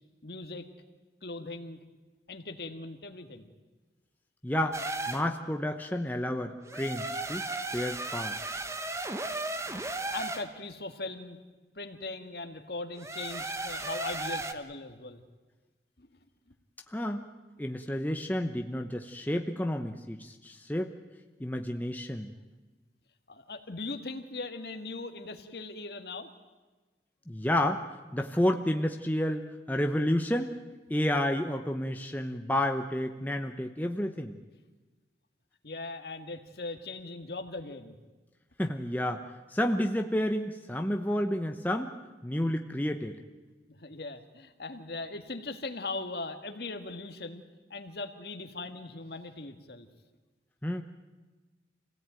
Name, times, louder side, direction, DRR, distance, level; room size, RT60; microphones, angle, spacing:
voice 1, 0.2-0.7 1.2-1.8 2.3-3.5 10.1-11.4 11.8-15.2 16.0-16.2 23.3-26.3 35.6-37.9 43.7-47.4 47.7-49.9, left 3 dB, 60° left, 6 dB, 1.9 m, -39 dB
voice 2, 4.4-8.5 16.9-17.2 17.6-20.9 21.4-22.3 27.3-27.8 28.1-30.6 30.9-34.4 38.6-39.2 39.5-42.0 42.2-43.2 50.6-50.8, left 1 dB, 10° left, 4 dB, 0.8 m, -30 dB
sound 1, 4.7-5.3 6.7-10.5 13.0-14.5, right 2 dB, 15° right, 1.0 m, -35 dB
26.5 x 17.0 x 9.1 m, 1.3 s
head